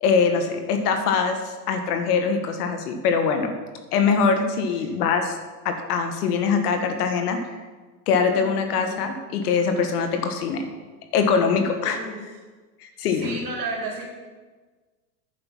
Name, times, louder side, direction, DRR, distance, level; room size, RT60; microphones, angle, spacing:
voice 1, 0.0-3.5 3.9-5.4 5.6-7.4 8.1-10.6 11.1-12.0 12.8-13.4, left 5 dB, 65° left, 6 dB, 1.5 m, -23 dB
voice 2, 8.3-9.1 11.8-12.2 13.1-14.0, right 3 dB, 40° right, -2 dB, 3.6 m, -34 dB
9.7 x 6.8 x 5.8 m, 1.3 s
hypercardioid pair, 125°, 49 cm